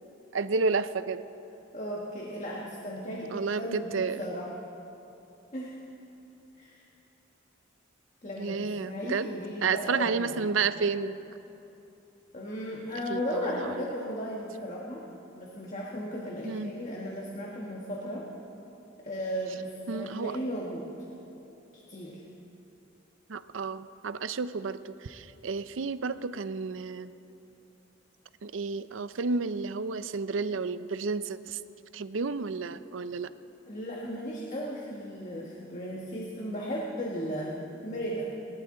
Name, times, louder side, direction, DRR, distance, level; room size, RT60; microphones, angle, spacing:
voice 1, 0.3-1.2 3.3-4.2 8.4-9.3 9.6-11.2 13.1-13.9 16.4-16.7 19.9-20.4 23.3-27.1 28.4-31.6 31.9-33.3, right 4 dB, 70° right, 14 dB, 0.5 m, -31 dB
voice 2, 1.7-3.3 3.6-4.5 5.5-5.8 6.5-6.8 8.2-10.5 12.3-15.0 15.3-18.3 19.0-20.9 21.7-22.2 33.7-38.3, equal, 35° left, -3 dB, 1.5 m, -35 dB
29.5 x 12.5 x 3.8 m, 3.0 s
head